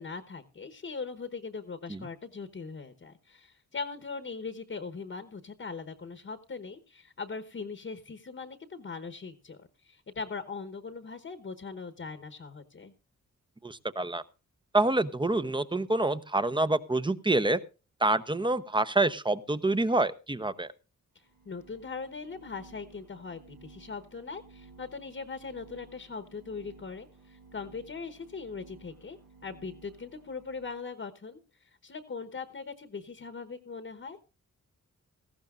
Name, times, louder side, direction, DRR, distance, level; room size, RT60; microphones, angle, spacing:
voice 1, 0.0-12.9 21.5-34.2, left 4 dB, 40° left, 10 dB, 1.1 m, -40 dB
voice 2, 13.6-14.2 14.7-17.6 18.0-20.7, right 2 dB, 15° right, 14 dB, 0.8 m, -27 dB
sound 1, 21.2-30.9, right 3 dB, 85° right, 2.1 m, -56 dB
17.5 x 14.5 x 2.5 m, 0.32 s
cardioid pair, 80°, 31 cm